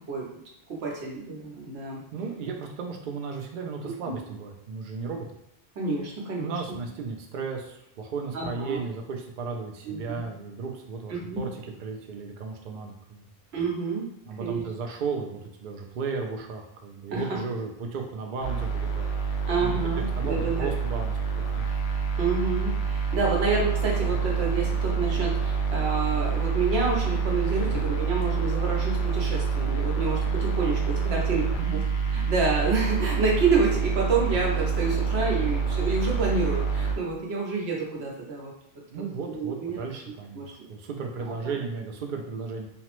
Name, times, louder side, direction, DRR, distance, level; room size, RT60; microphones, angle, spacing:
voice 1, 0.7-2.0 5.8-6.5 8.3-8.8 9.8-10.2 11.1-11.4 13.5-14.1 14.4-14.6 17.1-17.2 19.5-20.7 22.2-31.4 31.7-31.8 32.1-38.5 39.3-39.8 40.3-40.5, right 4 dB, 85° right, -2 dB, 1.0 m, -28 dB
voice 2, 2.1-5.3 6.4-13.2 14.2-19.2 19.6-19.8 20.2-21.8 24.1-24.2 27.6-27.8 30.8-31.3 31.6-31.8 38.9-42.7, right 4 dB, 60° right, 1 dB, 0.6 m, -35 dB
sound 1, 18.4-37.0, right 5 dB, 85° left, 0.8 m, -27 dB
3.2 x 2.0 x 3.0 m, 0.81 s
omnidirectional pair, 1.1 m